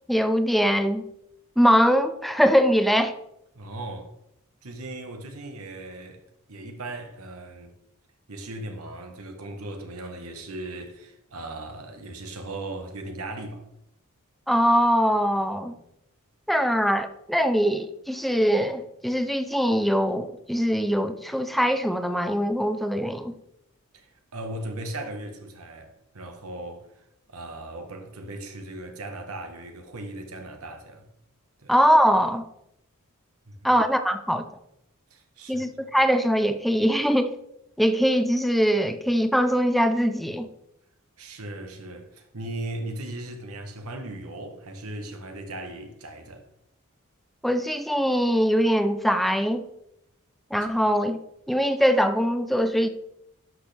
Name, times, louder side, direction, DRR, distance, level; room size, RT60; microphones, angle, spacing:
voice 1, 0.1-1.0 1.6-3.2 14.5-15.7 16.5-23.3 31.7-32.5 33.6-34.4 35.5-37.3 37.8-40.5 47.4-49.6 50.5-51.2 51.5-52.9, equal, ahead, 0.5 m, -22 dB
voice 2, 3.5-4.1 4.6-6.2 6.5-7.7 8.3-13.6 23.9-31.1 31.6-31.7 33.5-33.7 35.1-35.7 41.2-46.4, right 2 dB, 90° right, 1.3 m, -38 dB
11.5 x 6.2 x 3.4 m
head